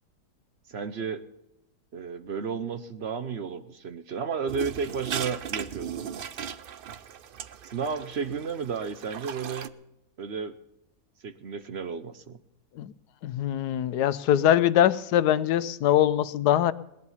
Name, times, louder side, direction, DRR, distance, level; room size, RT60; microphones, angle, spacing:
voice 1, 0.7-1.3 1.9-6.0 7.6-9.7 10.2-10.5 11.2-12.4, right 6 dB, 50° right, 11 dB, 0.9 m, -33 dB
sound 1, 4.5-9.7, right 8 dB, 70° right, 0.5 m, -37 dB
voice 2, 13.2-16.7, left 11 dB, 80° left, 14 dB, 1.3 m, -22 dB
18.5 x 11.0 x 5.7 m, 0.87 s
omnidirectional pair, 1.7 m